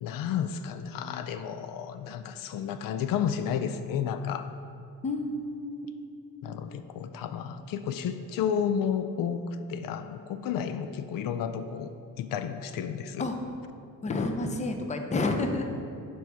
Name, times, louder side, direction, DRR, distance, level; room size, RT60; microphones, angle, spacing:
voice 1, 0.0-4.5 6.4-11.9 12.2-13.2, left 8 dB, 75° left, 10 dB, 0.5 m, -32 dB
voice 2, 5.0-5.9 13.2-13.4 14.0-15.6, left 2 dB, 20° left, 5 dB, 0.5 m, -30 dB
7.1 x 4.6 x 5.5 m, 2.4 s
cardioid pair, 135°, 34 cm